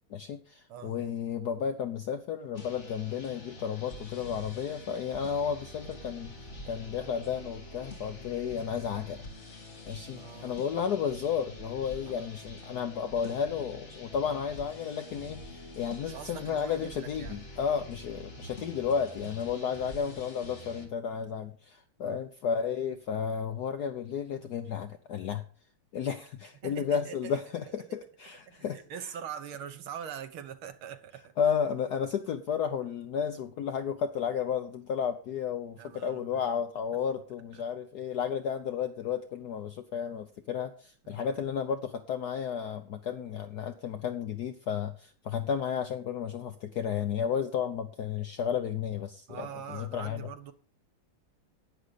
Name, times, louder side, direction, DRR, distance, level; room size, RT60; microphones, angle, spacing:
voice 1, 0.0-6.3 6.6-9.2 9.8-25.4 25.9-28.8 31.4-50.3, left 7 dB, 65° left, 1.1 m, -33 dB
voice 2, 0.7-1.0 10.2-10.6 11.9-12.5 16.1-17.4 22.0-22.2 26.6-27.4 27.7-28.0 28.5-31.3 35.8-36.6 37.5-37.7 41.0-41.3 49.3-50.5, right 8 dB, 85° right, 2.0 m, -43 dB
sound 1, 2.5-20.9, left 1 dB, 35° left, 2.6 m, -46 dB
11.5 x 9.7 x 4.0 m
omnidirectional pair, 2.3 m